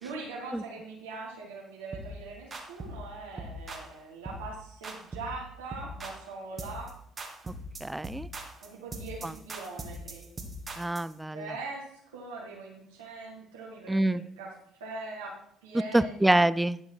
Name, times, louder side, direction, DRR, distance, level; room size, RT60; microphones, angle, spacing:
voice 1, 0.0-6.9 8.6-10.3 11.3-11.9 12.1-14.5 14.8-15.3 15.6-16.3, right 3 dB, 85° right, -4 dB, 1.7 m, -41 dB
sound 1, 1.9-2.2 2.5-3.0 3.4-3.9 4.3-4.5 4.8-5.4 5.7-6.2 6.6-6.9 7.2-11.1, right 1 dB, 35° right, 1.8 m, -41 dB
voice 2, 7.8-8.3 9.2-9.3 10.8-11.5 13.9-14.2 15.9-16.8, right 1 dB, 10° right, 17 dB, 0.4 m, -26 dB
11.0 x 5.4 x 4.7 m, 0.68 s
hypercardioid pair, 55°, 0 cm